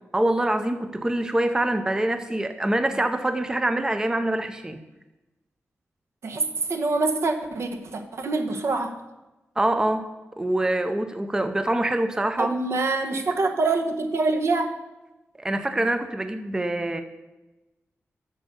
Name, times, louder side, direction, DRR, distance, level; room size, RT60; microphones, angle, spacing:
voice 1, 0.1-4.8 9.6-10.1 10.4-12.5 15.4-17.0, right 1 dB, 15° right, 8 dB, 0.5 m, -25 dB
voice 2, 6.2-9.0 12.4-14.7, right 3 dB, 65° right, 6 dB, 1.0 m, -25 dB
8.3 x 6.7 x 6.6 m, 1.1 s
wide cardioid pair, 125°, 5 cm